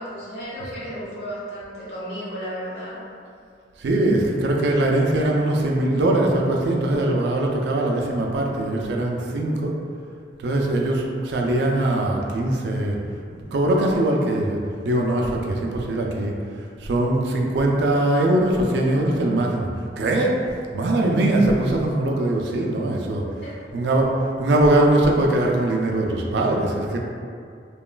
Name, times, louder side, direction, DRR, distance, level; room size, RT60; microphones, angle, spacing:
voice 1, 0.0-3.0 23.2-23.5, equal, 70° left, -9 dB, 1.0 m, -34 dB
voice 2, 3.8-9.7 10.4-13.0 13.5-19.7 20.0-20.5 20.7-23.2 23.7-27.0, right 1 dB, 70° right, 0 dB, 0.3 m, -21 dB
2.9 x 2.3 x 2.2 m, 2.3 s
head